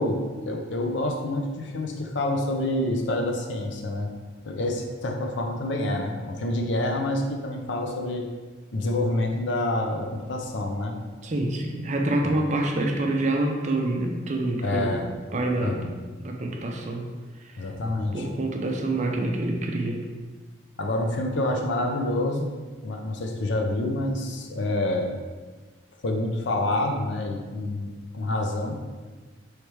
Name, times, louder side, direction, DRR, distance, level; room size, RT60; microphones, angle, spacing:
voice 1, 0.0-4.1 4.4-8.3 8.7-11.0 12.2-12.4 14.6-15.1 15.6-15.9 17.6-18.4 20.8-22.5 22.8-25.1 26.0-28.8, left 1 dB, 65° left, 3 dB, 0.5 m, -27 dB
voice 2, 11.2-15.0 15.3-15.9 16.2-17.0 18.1-20.0, right 2 dB, 35° right, 2 dB, 0.4 m, -26 dB
4.6 x 3.2 x 3.2 m, 1.4 s
head